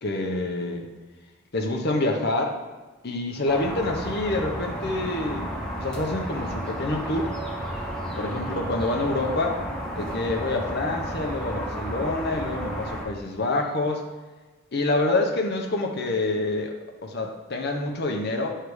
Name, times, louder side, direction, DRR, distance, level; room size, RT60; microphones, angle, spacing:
voice 1, 0.0-0.9 1.5-2.6 3.0-5.5 5.7-7.3 8.2-9.6 9.9-14.0 14.7-16.7 17.0-18.6, left 2 dB, 45° left, 2 dB, 0.7 m, -27 dB
sound 1, 3.5-13.0, equal, 5° left, 0.6 m, -32 dB
6.6 x 3.3 x 4.7 m, 1.3 s
head